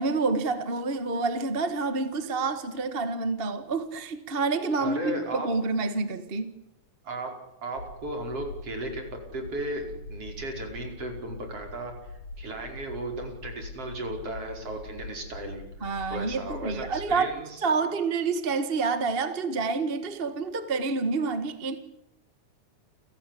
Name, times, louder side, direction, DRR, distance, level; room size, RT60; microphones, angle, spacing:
voice 1, 0.0-6.5 15.8-17.3 17.6-21.8, right 4 dB, 25° right, 10 dB, 1.3 m, -28 dB
voice 2, 4.8-5.5 7.0-7.3 7.6-9.0 9.3-12.1 12.4-15.6 16.1-18.0, right 1 dB, 50° right, 3 dB, 6.1 m, -35 dB
sound 1, 7.8-17.1, left 2 dB, 85° left, 6.0 m, -43 dB
29.5 x 16.0 x 8.5 m, 0.86 s
omnidirectional pair, 3.3 m